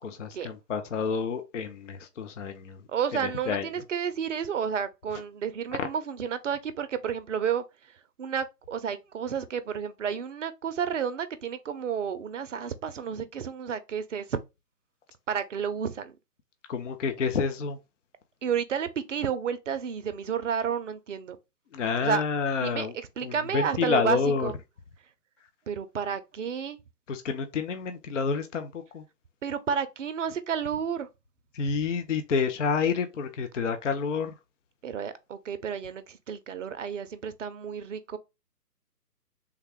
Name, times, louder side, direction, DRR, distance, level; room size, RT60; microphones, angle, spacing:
voice 1, 0.0-2.8 3.1-3.7 5.8-5.9 16.7-17.8 21.7-23.0 23.2-24.5 27.1-29.0 31.5-34.3, left 5 dB, 50° left, 0.5 m, -29 dB
voice 2, 2.9-7.6 8.2-14.4 15.3-16.1 18.4-21.4 22.0-22.2 22.6-22.9 23.2-24.5 25.7-26.8 29.4-31.1 34.8-38.2, right 7 dB, 50° right, 0.5 m, -31 dB
3.4 x 2.2 x 3.4 m
figure-of-eight pair, 140°, 48 cm